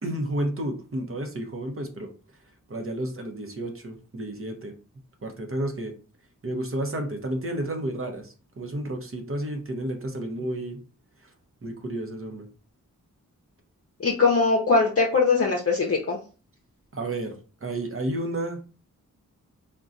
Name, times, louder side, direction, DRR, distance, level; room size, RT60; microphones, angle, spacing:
voice 1, 0.0-2.1 2.7-4.7 5.2-5.9 6.4-10.8 11.6-12.5 16.9-17.3 17.6-18.6, right 1 dB, 45° right, 3 dB, 0.7 m, -31 dB
voice 2, 14.0-16.2, left 4 dB, 45° left, -1 dB, 0.6 m, -21 dB
3.7 x 2.2 x 2.5 m, 0.36 s
wide cardioid pair, 65°, 32 cm